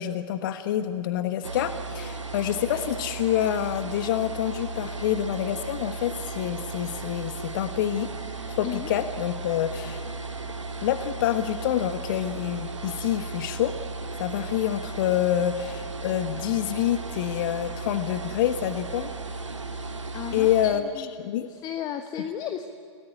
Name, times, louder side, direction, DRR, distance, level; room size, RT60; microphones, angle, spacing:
voice 1, 0.0-8.1 8.5-10.1 10.8-13.7 14.2-19.1 20.3-21.5, left 11 dB, 45° left, 10 dB, 1.2 m, -27 dB
sound 1, 1.4-20.7, right 3 dB, 80° right, 1.8 m, -35 dB
voice 2, 20.1-21.1 21.3-22.7, left 9 dB, 25° left, 8 dB, 1.2 m, -34 dB
29.0 x 18.5 x 9.7 m, 2.2 s
figure-of-eight pair, 115°, 15 cm